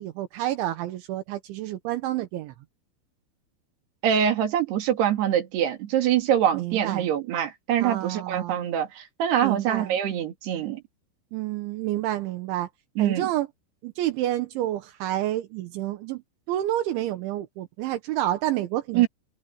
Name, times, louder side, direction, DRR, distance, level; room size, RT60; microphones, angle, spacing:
voice 1, 0.0-2.5 6.5-7.1 7.8-8.7 9.4-10.0 11.3-12.7 13.0-13.5 13.8-16.2 16.5-19.1, right 14 dB, 80° right, 3.6 m, -29 dB
voice 2, 4.0-10.8 13.0-13.3 18.9-19.1, right 10 dB, 65° right, 4.4 m, -24 dB
omnidirectional pair, 5.4 m